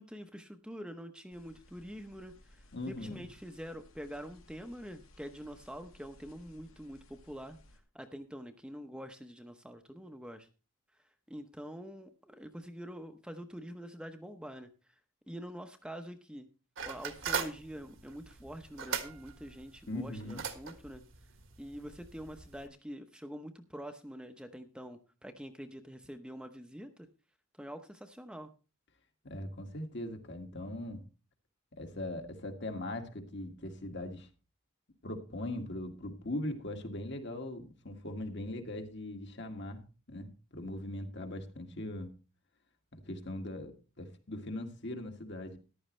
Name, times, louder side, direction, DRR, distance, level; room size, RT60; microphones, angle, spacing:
voice 1, 0.0-7.6 7.9-10.5 11.3-14.7 15.3-16.5 16.8-21.0 21.6-27.1 27.6-28.5, equal, 5° right, 6 dB, 0.8 m, -45 dB
sound 1, 1.3-7.8, left 1 dB, 80° left, 2.4 m, -60 dB
voice 2, 2.7-3.3 19.9-20.4 29.2-31.0 31.7-34.3 35.0-42.1 42.9-45.6, left 1 dB, 55° left, 4 dB, 2.0 m, -40 dB
sound 2, 16.8-22.7, right 7 dB, 65° right, 1.5 m, -41 dB
14.5 x 11.5 x 3.2 m, 0.33 s
head